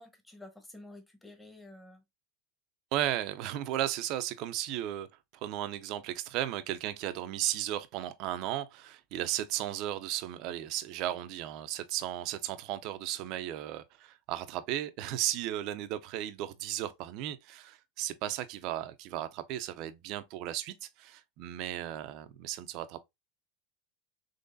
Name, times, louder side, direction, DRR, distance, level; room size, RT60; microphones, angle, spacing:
voice 1, 0.0-2.0, left 2 dB, 10° left, 1.1 m, -51 dB
voice 2, 2.9-5.1 5.4-23.0, right 13 dB, 60° right, 0.5 m, -35 dB
3.8 x 3.2 x 2.6 m
hypercardioid pair, 100°, 0 cm